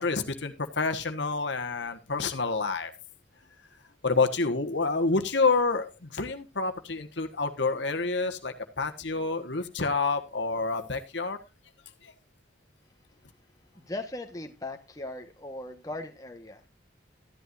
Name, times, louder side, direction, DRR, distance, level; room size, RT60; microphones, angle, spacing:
voice 1, 0.0-2.9 4.0-11.4 12.0-12.1, left 3 dB, 70° left, 6 dB, 1.4 m, -28 dB
voice 2, 13.7-16.7, left 2 dB, 20° left, 3 dB, 1.3 m, -39 dB
14.5 x 11.0 x 2.6 m, 0.27 s
head